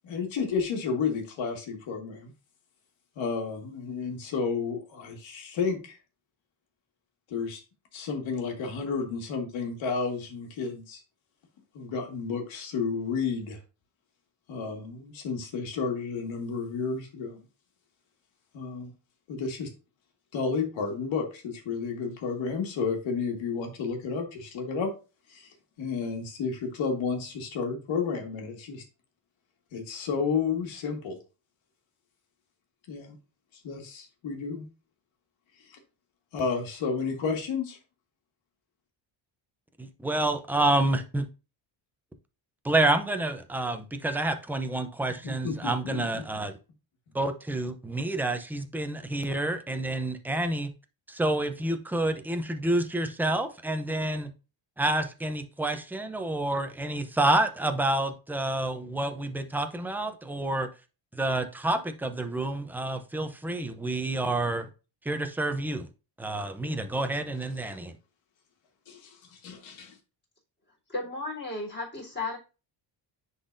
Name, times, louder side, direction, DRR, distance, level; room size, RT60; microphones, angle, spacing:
voice 1, 0.0-2.3 3.2-6.0 7.3-7.6 7.9-11.0 11.7-13.6 14.5-17.4 18.5-18.9 19.3-19.7 20.3-24.9 25.3-25.5 25.8-28.8 29.7-31.2 32.9-33.2 33.6-34.7 35.6-35.8 36.3-37.8 45.2-46.2 68.9-70.0, left 5 dB, 85° left, 1.9 m, -31 dB
voice 2, 39.8-41.3 42.6-46.6 47.1-50.7 51.1-54.3 54.8-60.7 61.1-64.7 65.0-65.9 66.2-67.9, right 2 dB, 5° right, 0.6 m, -28 dB
voice 3, 70.9-72.4, left 3 dB, 25° left, 3.6 m, -34 dB
10.0 x 4.0 x 2.6 m
cardioid pair, 145°, 45 cm